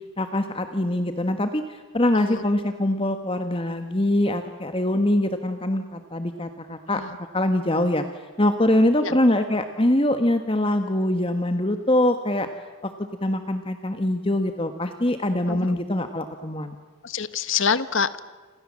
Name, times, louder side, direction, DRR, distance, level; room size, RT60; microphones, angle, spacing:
voice 1, 0.2-7.0 7.3-12.5 12.8-16.8, left 1 dB, 25° left, 7 dB, 1.4 m, -23 dB
voice 2, 2.1-2.5 6.9-7.1 9.0-9.2 15.5-15.8 17.0-18.2, left 6 dB, 60° left, 13 dB, 1.2 m, -26 dB
29.5 x 26.5 x 7.5 m, 1.4 s
head